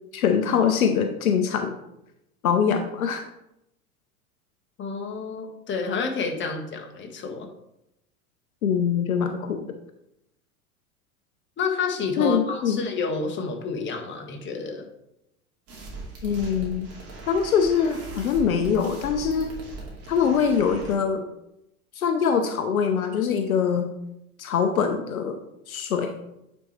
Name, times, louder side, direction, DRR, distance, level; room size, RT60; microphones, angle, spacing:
voice 1, 0.1-1.7 2.4-3.3 8.6-9.7 12.2-12.8 16.2-16.9 17.2-19.5 20.1-21.3 21.9-23.9 24.4-25.4 25.7-26.1, left 7 dB, 70° left, 7 dB, 0.7 m, -23 dB
voice 2, 4.8-7.5 11.6-14.9, left 4 dB, 25° left, 3 dB, 1.3 m, -29 dB
sound 1, 15.7-20.9, right 2 dB, 35° right, 2.5 m, -40 dB
9.0 x 4.3 x 3.2 m, 0.84 s
figure-of-eight pair, 80°, 44 cm